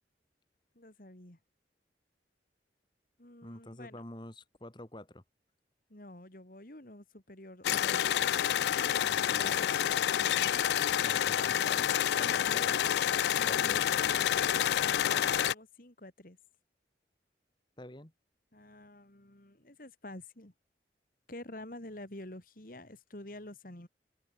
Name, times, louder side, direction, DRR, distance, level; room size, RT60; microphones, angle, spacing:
voice 1, 0.7-1.4 3.2-4.0 5.9-8.0 8.8-10.7 12.2-12.8 13.3-14.2 15.4-16.4 18.5-20.5 21.3-23.9, left 1 dB, 50° left, 2.8 m, -49 dB
voice 2, 3.4-5.2 9.1-9.8 11.0-12.8 13.4-13.8 15.1-15.2 17.8-18.1, left 1 dB, 25° left, 2.0 m, -48 dB
sound 1, 7.6-15.5, left 10 dB, 70° left, 0.3 m, -28 dB
head